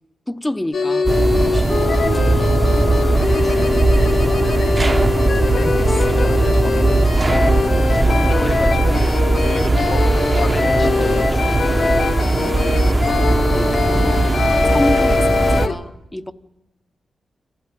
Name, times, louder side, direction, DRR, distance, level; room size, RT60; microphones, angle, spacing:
voice 1, 0.3-1.1 1.4-2.8 3.4-4.5 5.5-6.1 13.5-14.4 14.6-16.3, left 1 dB, 10° left, 0.9 m, -29 dB
sound 1, 0.7-15.7, left 4 dB, 55° left, 1.4 m, -22 dB
sound 2, 1.1-15.7, right 2 dB, 20° right, 1.1 m, -18 dB
sound 3, 2.9-13.4, left 5 dB, 85° left, 2.5 m, -38 dB
voice 2, 5.9-7.0 8.0-10.1 10.3-11.9, left 3 dB, 40° left, 1.0 m, -31 dB
25.0 x 15.5 x 8.9 m
wide cardioid pair, 105°, 0 cm